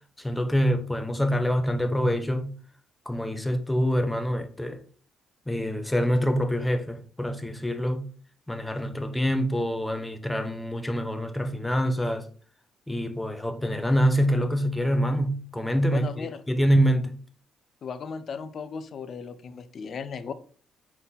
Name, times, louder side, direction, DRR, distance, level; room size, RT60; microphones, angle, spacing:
voice 1, 0.2-2.5 3.1-4.8 5.5-8.0 8.5-12.3 12.9-17.2, equal, 10° left, 1.0 m, -25 dB
voice 2, 15.9-16.4 17.8-20.3, left 6 dB, 55° left, 0.7 m, -36 dB
5.6 x 4.3 x 4.1 m
cardioid pair, 90°, 0 cm